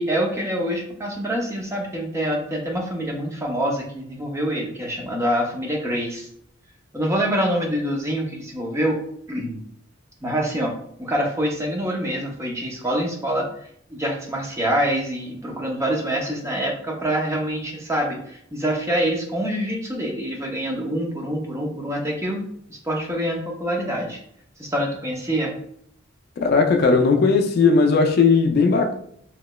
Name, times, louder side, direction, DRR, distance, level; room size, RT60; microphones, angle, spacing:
voice 1, 0.0-6.3 6.9-9.0 9.3-9.6 10.2-13.5 13.9-22.5 22.8-24.2 24.6-25.5, equal, 15° right, 0.5 m, -25 dB
voice 2, 26.4-28.9, left 4 dB, 50° left, 0.3 m, -17 dB
3.0 x 2.9 x 2.2 m
head